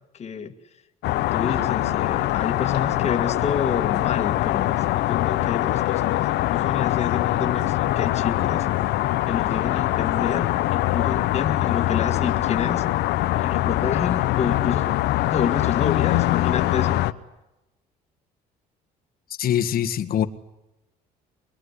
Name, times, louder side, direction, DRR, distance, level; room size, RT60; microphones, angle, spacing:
voice 1, 0.2-0.5 1.0-8.7 9.3-12.8 13.4-14.9 15.3-17.0, left 6 dB, 40° left, 5 dB, 1.9 m, -28 dB
sound 1, 1.0-17.1, left 16 dB, 85° left, 1.0 m, -23 dB
voice 2, 19.4-20.2, left 10 dB, 60° left, 7 dB, 1.7 m, -23 dB
23.5 x 23.0 x 9.9 m, 0.96 s
cardioid pair, 110°, 17 cm